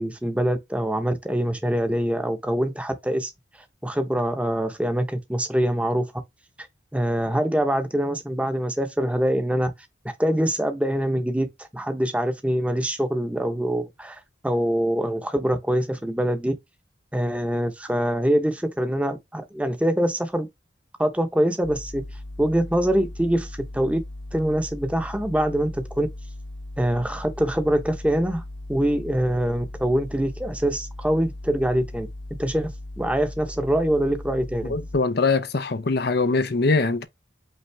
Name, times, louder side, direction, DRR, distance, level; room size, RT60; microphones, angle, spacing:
voice 1, 0.0-3.3 3.8-6.1 6.9-9.7 10.2-16.5 17.1-20.5 21.0-22.0 22.4-24.0 24.3-26.1 26.8-28.4 28.7-32.1 32.4-34.8, right 1 dB, 5° right, 0.9 m, -24 dB
sound 1, 21.6-35.0, left 1 dB, 80° left, 1.0 m, -38 dB
voice 2, 34.7-37.0, left 3 dB, 60° left, 0.7 m, -22 dB
5.6 x 2.6 x 3.4 m
head